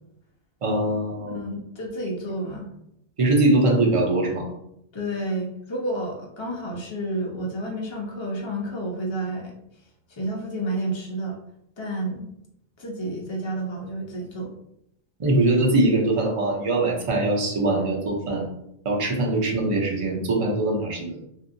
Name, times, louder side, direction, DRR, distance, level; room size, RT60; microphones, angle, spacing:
voice 1, 0.6-1.4 3.2-4.5 15.2-18.5 18.8-21.2, right 2 dB, 40° right, -1 dB, 0.4 m, -22 dB
voice 2, 1.3-2.7 4.9-9.5 10.1-11.4 11.8-12.3 12.8-14.5, right 1 dB, 40° left, -1 dB, 0.4 m, -30 dB
2.8 x 2.6 x 2.5 m, 0.78 s
omnidirectional pair, 1.3 m